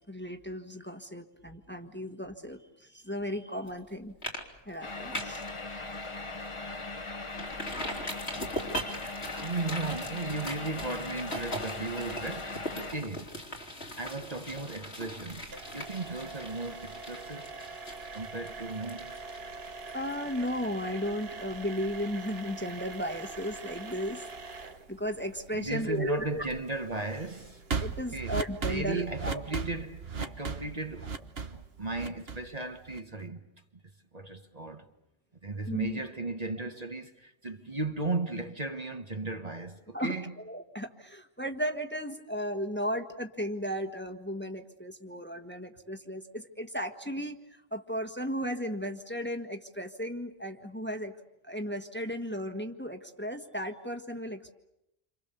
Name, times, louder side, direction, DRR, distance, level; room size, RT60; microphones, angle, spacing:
voice 1, 0.1-4.1 4.6-5.4 19.9-24.3 24.5-26.4 27.8-29.4 35.7-36.0 39.9-51.1 51.4-54.5, equal, 10° left, 1.4 m, -35 dB
sound 1, 3.7-3.9 4.2-4.4 4.7-5.5 5.9-6.0 6.4-6.5 7.3-20.9 21.2-21.3, equal, 90° left, 3.6 m, -40 dB
sound 2, 4.8-12.9, left 2 dB, 30° left, 1.2 m, -39 dB
voice 2, 9.4-13.3 13.9-17.5 18.1-19.1 25.5-27.7 28.1-33.4 33.7-33.8 34.1-34.8 35.4-40.2, right 3 dB, 40° right, 1.3 m, -36 dB
sound 3, 15.3-33.2, right 5 dB, 65° right, 1.6 m, -40 dB
28.5 x 26.5 x 6.9 m
omnidirectional pair, 1.1 m